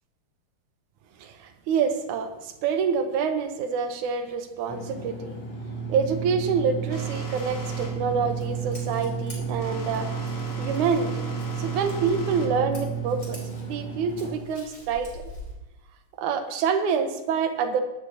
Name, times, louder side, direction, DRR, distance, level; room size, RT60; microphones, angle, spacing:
voice 1, 1.2-5.4 5.9-10.1 10.6-11.3 11.6-15.2 16.2-17.8, right 6 dB, 75° right, 6 dB, 2.2 m, -27 dB
sound 1, 4.7-14.3, right 6 dB, 50° left, 1.4 m, -32 dB
sound 2, 6.9-13.8, left 2 dB, 90° left, 3.7 m, -40 dB
Scissors, 7.4-15.5, left 1 dB, 25° left, 3.3 m, -46 dB
16.0 x 11.5 x 2.9 m, 0.98 s
omnidirectional pair, 3.8 m